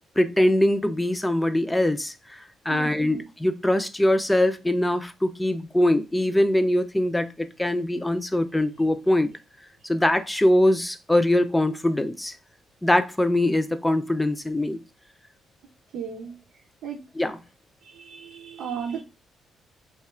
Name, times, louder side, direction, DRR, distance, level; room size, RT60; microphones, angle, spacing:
voice 1, 0.2-2.4 2.7-9.3 9.8-12.3 12.8-14.8 17.2-17.4, left 1 dB, 10° left, 0.5 m, -22 dB
voice 2, 2.7-3.2 15.9-16.4 16.8-17.0 17.8-19.0, right 7 dB, 75° right, 0.6 m, -35 dB
3.2 x 2.4 x 4.3 m
cardioid pair, 90°, 0 cm